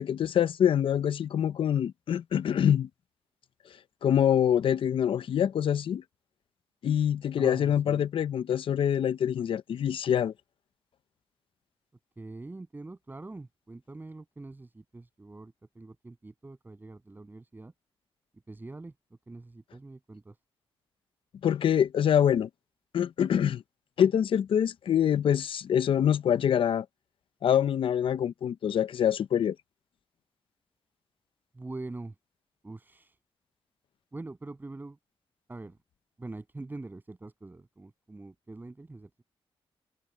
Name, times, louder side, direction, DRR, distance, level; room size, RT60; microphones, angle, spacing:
voice 1, 0.0-2.9 4.0-6.0 6.8-10.3 21.4-22.5 22.9-23.6 24.0-26.9 27.4-29.6, left 9 dB, 75° left, 0.7 m, -25 dB
voice 2, 7.4-8.1 12.2-17.7 18.5-18.9 19.3-20.4 31.5-32.1 32.6-33.2 34.1-35.0 35.5-35.8 36.2-39.2, right 2 dB, 20° right, 7.6 m, -44 dB
wide cardioid pair, 115°, 9 cm